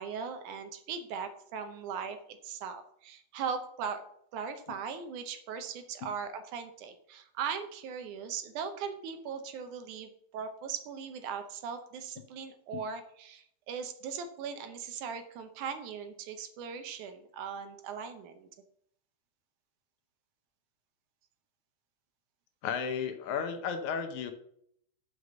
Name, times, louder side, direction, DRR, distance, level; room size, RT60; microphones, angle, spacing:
voice 1, 0.0-4.0 4.3-18.5, right 6 dB, 75° right, 8 dB, 2.2 m, -39 dB
voice 2, 22.6-24.3, left 6 dB, 75° left, 7 dB, 2.1 m, -33 dB
6.6 x 6.4 x 7.0 m, 0.70 s
omnidirectional pair, 3.8 m